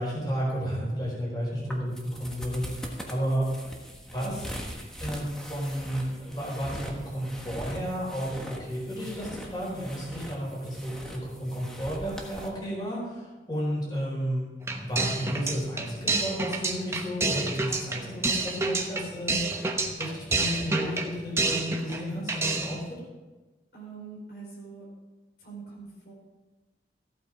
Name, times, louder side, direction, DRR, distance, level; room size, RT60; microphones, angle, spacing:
voice 1, 0.0-3.4 4.1-4.5 5.0-14.4 14.8-22.8, equal, 25° left, -5 dB, 4.4 m, -32 dB
sound 1, 1.6-12.5, equal, 5° left, 1.4 m, -41 dB
sound 2, 14.6-22.0 22.3-22.8, right 3 dB, 15° right, 0.9 m, -29 dB
voice 2, 23.7-24.8 25.4-26.1, right 5 dB, 65° left, -3 dB, 4.1 m, -43 dB
15.0 x 8.6 x 5.0 m, 1.2 s
head